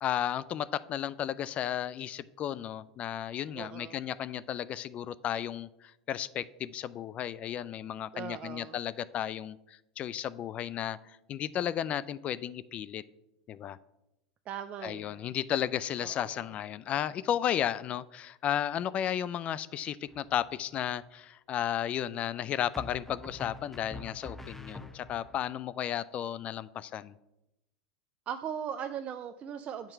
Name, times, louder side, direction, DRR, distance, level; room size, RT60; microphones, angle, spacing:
voice 1, 0.0-13.0 13.5-13.8 14.8-27.1, left 10 dB, 40° left, 17 dB, 0.3 m, -34 dB
voice 2, 3.6-4.0 8.1-8.8 14.5-15.3 16.0-16.5 28.3-29.9, right 8 dB, 40° right, 9 dB, 0.4 m, -39 dB
sound 1, 20.1-20.6 22.7-25.4, left 3 dB, 5° left, 0.6 m, -45 dB
8.1 x 4.4 x 5.6 m, 0.90 s
hypercardioid pair, 85°, 3 cm